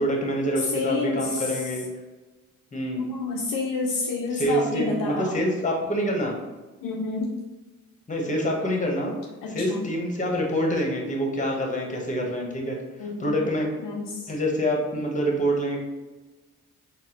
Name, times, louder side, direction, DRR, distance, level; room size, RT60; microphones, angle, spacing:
voice 1, 0.0-1.9 2.7-3.1 4.3-6.4 8.1-9.1 9.5-12.8 13.2-13.7 14.3-15.8, equal, 20° left, 0 dB, 1.1 m, -26 dB
voice 2, 0.7-1.5 2.9-5.3 6.8-7.3 9.4-9.8 13.0-13.4 13.8-14.3, left 4 dB, 60° left, -1 dB, 0.7 m, -29 dB
4.1 x 2.2 x 3.7 m, 1.2 s
supercardioid pair, 60°, 37 cm